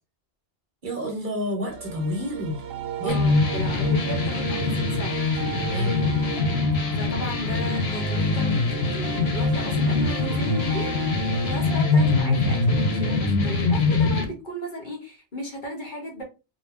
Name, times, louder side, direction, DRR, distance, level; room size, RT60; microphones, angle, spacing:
voice 1, 0.8-2.6 3.0-3.4 5.6-6.0, equal, 55° right, 1.0 m, -30 dB
sound 1, 1.7-13.2, right 9 dB, 75° right, 0.8 m, -36 dB
voice 2, 3.0-5.4 6.9-11.0 11.4-16.2, equal, 55° left, 1.0 m, -35 dB
sound 2, 3.1-14.2, left 3 dB, 90° left, 0.9 m, -23 dB
2.3 x 2.3 x 3.3 m
omnidirectional pair, 1.0 m